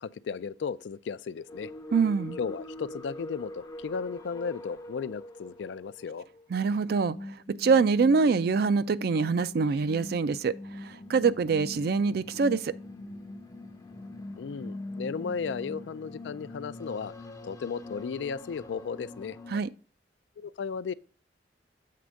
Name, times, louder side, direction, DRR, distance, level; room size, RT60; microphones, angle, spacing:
voice 1, 0.0-1.7 2.4-6.3 14.4-17.1 17.4-19.4 20.4-20.9, left 5 dB, 80° left, 0.4 m, -35 dB
sound 1, 1.5-19.6, left 1 dB, 20° left, 0.5 m, -43 dB
voice 2, 1.9-2.4 6.5-7.2 7.6-10.5 10.8-12.7 19.5-19.7, right 5 dB, 60° right, 0.4 m, -25 dB
7.6 x 3.4 x 6.2 m
head